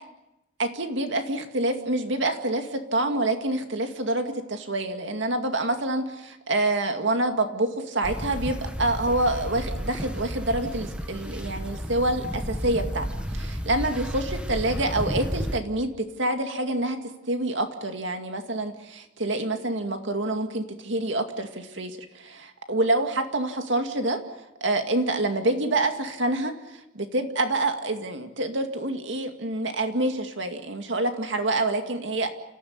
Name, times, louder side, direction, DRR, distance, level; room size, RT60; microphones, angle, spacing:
voice 1, 0.6-13.1 13.3-17.0 17.3-24.2 24.6-26.5 26.9-32.3, right 2 dB, 70° right, 6 dB, 2.2 m, -27 dB
sound 1, 8.0-15.6, equal, 5° right, 1.5 m, -32 dB
29.5 x 14.5 x 9.6 m, 0.94 s
head